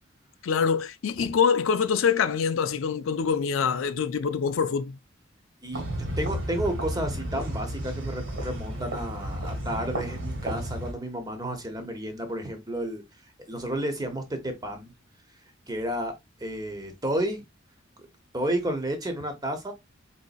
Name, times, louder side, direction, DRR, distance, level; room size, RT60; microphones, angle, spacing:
voice 1, 0.4-5.0, left 6 dB, 75° left, 0.4 m, -25 dB
sound 1, 5.7-10.9, right 1 dB, 75° right, 1.8 m, -32 dB
voice 2, 6.2-13.0 13.5-14.9 15.7-16.1 16.4-17.4 18.3-19.7, right 1 dB, 20° right, 0.9 m, -31 dB
4.1 x 3.9 x 2.4 m
head